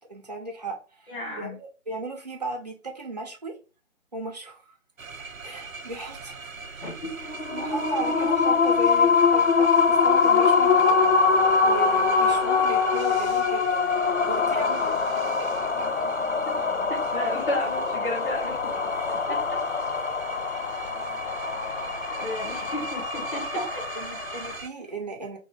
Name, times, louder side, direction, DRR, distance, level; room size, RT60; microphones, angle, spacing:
voice 1, 0.1-1.1 1.4-3.5 4.1-4.7 5.4-6.4 7.2-11.0 11.6-15.0 15.8-15.9 18.9-19.0 23.5-23.7 23.9-25.4, right 2 dB, 30° right, 0 dB, 0.9 m, -36 dB
voice 2, 1.1-1.6 6.8-7.1 16.5-16.6 16.9-18.7 19.1-19.4 22.1-23.6, left 1 dB, 40° left, -4 dB, 2.2 m, -33 dB
sound 1, 5.0-24.7, right 4 dB, 70° right, 0.7 m, -40 dB
sound 2, 7.2-24.6, left 5 dB, 55° left, 0.6 m, -23 dB
4.1 x 3.1 x 3.5 m, 0.33 s
figure-of-eight pair, 155°, 42 cm